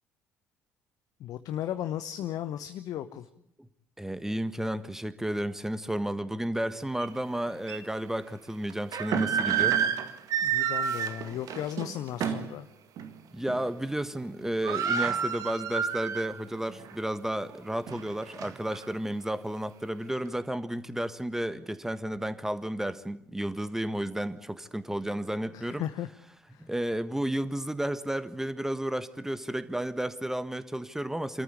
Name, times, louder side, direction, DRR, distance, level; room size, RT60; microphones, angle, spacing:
voice 1, 1.2-3.3 10.4-12.7 25.5-26.1 26.5-26.7, left 11 dB, 60° left, 0.9 m, -35 dB
voice 2, 4.0-9.8 12.2-12.3 13.3-25.9 26.6-31.4, right 1 dB, 5° right, 1.5 m, -32 dB
sound 1, 7.0-7.1 7.7-7.8 8.7-12.5 13.0-13.1 13.5-13.9 14.1-14.2 14.4-16.4 16.8-16.9 17.5-18.8, right 8 dB, 55° right, 1.8 m, -29 dB
25.5 x 14.0 x 9.9 m
hypercardioid pair, 55°, 7 cm